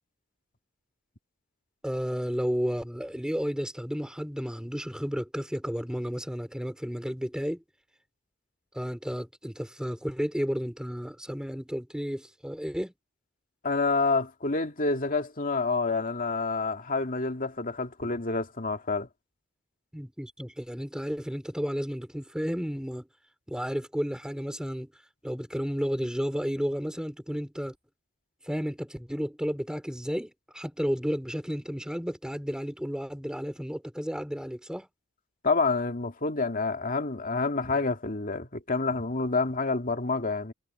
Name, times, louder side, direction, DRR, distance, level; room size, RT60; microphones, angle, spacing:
voice 1, 1.8-7.6 8.7-12.9 19.9-23.1 23.5-24.9 25.2-27.8 28.4-34.9, equal, 5° right, 3.7 m, -32 dB
voice 2, 13.6-19.1 35.4-40.5, left 3 dB, 40° left, 2.3 m, -28 dB
head